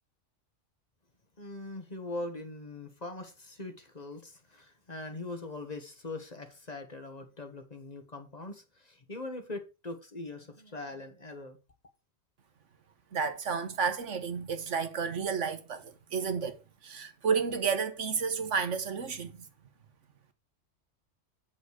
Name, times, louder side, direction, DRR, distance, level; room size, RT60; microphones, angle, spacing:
voice 1, 1.4-11.6, left 2 dB, 35° left, 1.5 m, -41 dB
voice 2, 13.1-19.5, right 6 dB, 80° right, 1.5 m, -31 dB
8.8 x 5.8 x 4.9 m
omnidirectional pair, 1.2 m